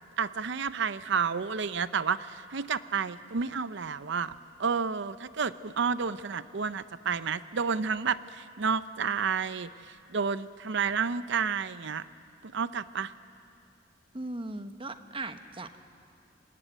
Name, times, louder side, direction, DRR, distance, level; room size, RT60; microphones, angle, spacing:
voice 1, 0.2-4.3 4.6-12.0 12.4-13.1, right 6 dB, 65° right, 14 dB, 0.6 m, -30 dB
voice 2, 14.1-15.8, right 2 dB, 30° right, 9 dB, 1.1 m, -38 dB
28.5 x 17.5 x 9.0 m, 2.5 s
head